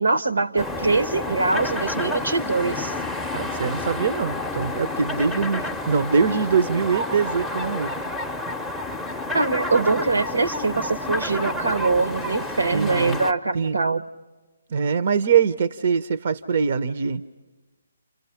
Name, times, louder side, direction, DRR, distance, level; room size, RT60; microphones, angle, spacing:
voice 1, 0.0-2.9 9.3-14.0, right 3 dB, 80° right, 1.1 m, -23 dB
sound 1, 0.6-13.3, left 2 dB, ahead, 0.7 m, -30 dB
voice 2, 3.3-7.9 12.7-13.3 13.5-13.8 14.7-17.2, right 6 dB, 55° right, 0.7 m, -23 dB
29.0 x 29.0 x 5.8 m
figure-of-eight pair, 145°, 0 cm